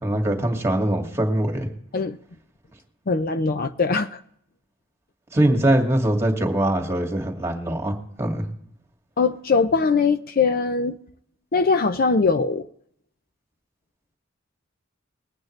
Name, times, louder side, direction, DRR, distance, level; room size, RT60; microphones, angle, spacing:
voice 1, 0.0-1.7 5.3-8.5, right 1 dB, 15° right, 2 dB, 2.1 m, -22 dB
voice 2, 3.1-4.2 9.2-11.0 11.5-12.7, left 4 dB, 45° left, 9 dB, 0.5 m, -21 dB
21.5 x 9.0 x 3.2 m, 0.70 s
head